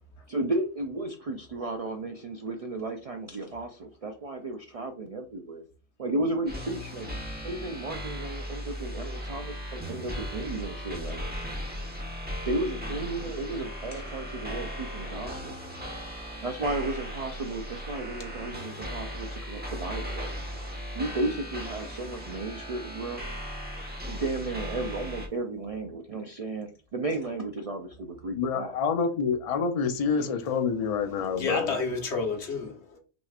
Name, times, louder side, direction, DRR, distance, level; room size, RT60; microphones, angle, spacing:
voice 1, 0.3-5.6 6.0-7.1 7.4-11.2 12.5-15.5 16.4-20.3 20.9-23.5 24.1-28.7, right 2 dB, 55° right, 0.4 m, -34 dB
sound 1, 6.5-25.3, equal, 10° right, 0.8 m, -37 dB
voice 2, 28.3-31.7, left 5 dB, 45° left, 0.5 m, -27 dB
voice 3, 31.0-33.0, left 4 dB, 70° left, 1.3 m, -31 dB
6.1 x 3.0 x 2.4 m
omnidirectional pair, 1.2 m